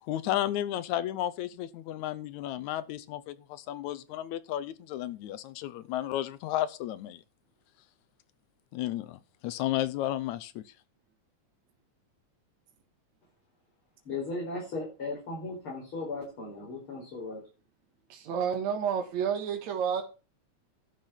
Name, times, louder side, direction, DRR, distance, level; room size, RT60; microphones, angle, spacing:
voice 1, 0.0-7.2 8.7-10.7, left 13 dB, 80° left, 2.0 m, -33 dB
voice 2, 14.1-17.4, left 3 dB, 45° left, 5.3 m, -36 dB
voice 3, 18.1-20.0, right 7 dB, 70° right, 2.7 m, -30 dB
12.0 x 6.7 x 5.8 m
omnidirectional pair, 3.4 m